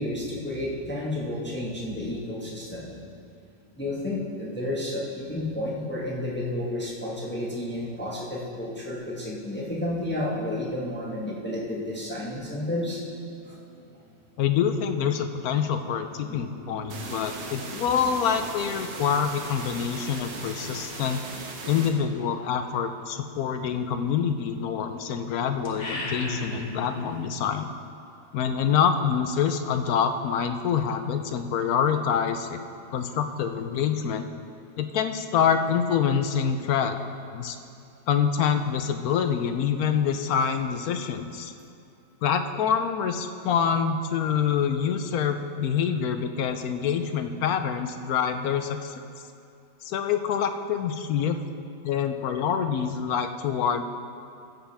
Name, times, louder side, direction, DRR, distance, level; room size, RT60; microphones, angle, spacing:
voice 1, 0.0-3.0 3.8-13.8 16.2-17.8 20.9-21.0, left 1 dB, 5° left, -5 dB, 1.3 m, -32 dB
voice 2, 14.4-21.2 21.7-27.7 28.3-32.6 32.9-34.3 34.8-37.0 37.3-37.6 38.1-41.5 42.2-48.9 49.8-51.4 51.8-53.8, left 7 dB, 70° left, 7 dB, 1.0 m, -26 dB
sound 1, 16.9-21.9, right 3 dB, 65° right, 1.6 m, -38 dB
sound 2, 25.6-27.2, left 2 dB, 45° left, 1.6 m, -33 dB
16.0 x 7.9 x 3.4 m, 2.6 s
omnidirectional pair, 1.8 m